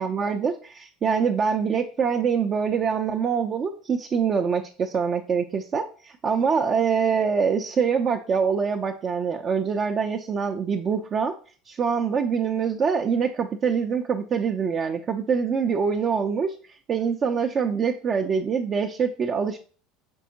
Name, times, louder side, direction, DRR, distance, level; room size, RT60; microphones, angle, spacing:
voice 1, 0.0-11.3 11.7-16.6 16.9-19.6, right 6 dB, 40° right, 3 dB, 0.4 m, -24 dB
5.3 x 3.4 x 2.8 m, 0.40 s
hypercardioid pair, 80°, 0 cm